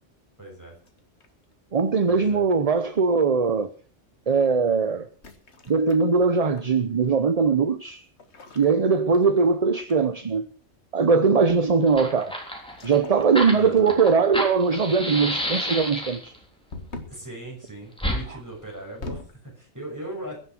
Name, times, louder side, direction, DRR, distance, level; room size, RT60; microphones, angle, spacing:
voice 1, 0.4-0.8 2.1-2.4 13.5-14.0 17.1-20.4, right 1 dB, 15° right, 6.3 m, -39 dB
sound 1, 0.8-1.5 2.7-3.0 5.1-6.8 8.2-9.6 9.9-10.2 12.7-13.3 13.7-14.2 16.7-17.3 18.5-19.4, left 2 dB, 65° left, 1.9 m, -42 dB
voice 2, 1.7-3.7 4.3-5.1 5.7-8.0 8.6-10.4 10.9-12.3 12.8-16.3, right 5 dB, 35° right, 0.8 m, -21 dB
Fire, 11.5-11.6 11.8-16.4 18.0-18.2, equal, 5° left, 3.3 m, -30 dB
21.5 x 7.3 x 6.1 m
omnidirectional pair, 1.3 m